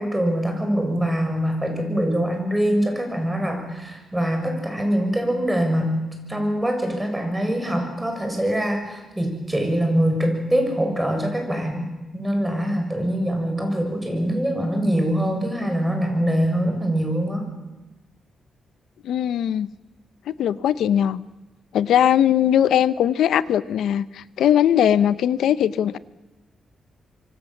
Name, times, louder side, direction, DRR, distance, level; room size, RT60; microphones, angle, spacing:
voice 1, 0.0-6.0 6.3-11.9 12.1-17.5, equal, 10° right, 3 dB, 6.8 m, -23 dB
voice 2, 19.0-19.7 20.4-21.2 21.7-26.0, left 10 dB, 90° left, 16 dB, 0.9 m, -20 dB
26.0 x 24.0 x 7.4 m, 1.1 s
cardioid pair, 110°, 0 cm